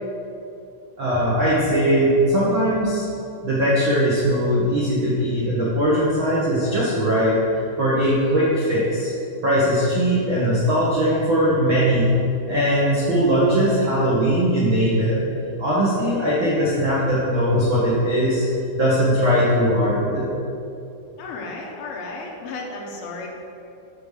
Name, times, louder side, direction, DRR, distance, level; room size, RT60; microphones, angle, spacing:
voice 1, 1.0-3.1 3.4-7.4 7.8-9.1 9.4-12.2 12.4-15.2 15.6-18.5 18.7-20.3, equal, 65° right, -8 dB, 1.2 m, -20 dB
voice 2, 21.2-23.3, left 3 dB, 80° left, 0 dB, 2.8 m, -33 dB
7.2 x 5.0 x 6.6 m, 2.7 s
omnidirectional pair, 4.3 m